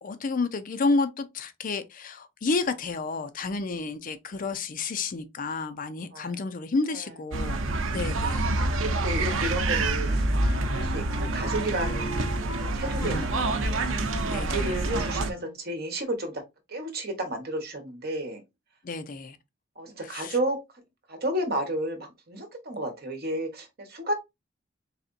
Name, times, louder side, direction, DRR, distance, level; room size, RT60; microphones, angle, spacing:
voice 1, 0.0-7.6 7.9-8.5 13.0-13.3 14.3-14.7 18.8-19.4 20.0-20.4, left 3 dB, 45° left, 0.5 m, -30 dB
sound 1, 7.3-15.3, right 2 dB, 90° right, 0.6 m, -27 dB
voice 2, 8.8-10.2 10.7-12.3 12.6-13.9 14.3-16.4 16.7-18.4 19.8-20.6 21.1-24.1, right 1 dB, 55° right, 1.2 m, -32 dB
Wind instrument woodwind instrument, 9.0-15.6, left 1 dB, 60° left, 1.7 m, -41 dB
4.2 x 3.3 x 2.6 m
head